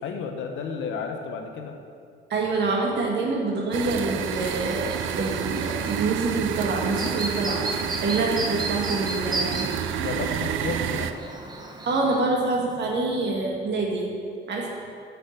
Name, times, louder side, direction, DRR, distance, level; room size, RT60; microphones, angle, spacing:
voice 1, 0.0-1.7 9.5-9.6 10.0-11.1, left 5 dB, 80° left, 4 dB, 0.9 m, -32 dB
voice 2, 2.3-7.7 8.0-9.7 11.8-14.1 14.5-14.7, right 3 dB, 60° right, -1 dB, 1.8 m, -26 dB
sound 1, 3.7-11.1, right 9 dB, 80° right, 0.4 m, -30 dB
Chirp tweet, 4.2-12.2, right 2 dB, 20° right, 0.9 m, -35 dB
6.0 x 5.5 x 6.5 m, 2.3 s
cardioid pair, 90°, 20 cm